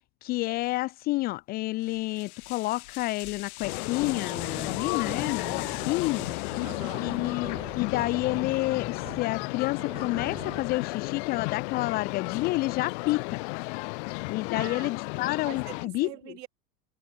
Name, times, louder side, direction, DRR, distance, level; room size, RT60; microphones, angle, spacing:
voice 1, 0.2-6.3 6.9-13.4 14.3-16.4, left 19 dB, 20° left, 0.6 m, -29 dB
sound 1, 1.8-7.4, left 19 dB, 60° left, 6.6 m, -43 dB
sound 2, 3.6-15.9, left 30 dB, 45° left, 2.0 m, -33 dB
sound 3, 4.0-10.7, right 7 dB, 10° right, 1.9 m, -44 dB
voice 2, 6.6-7.1 14.5-14.9 15.4-16.5, right 16 dB, 75° right, 6.8 m, -43 dB
supercardioid pair, 180°, 48 cm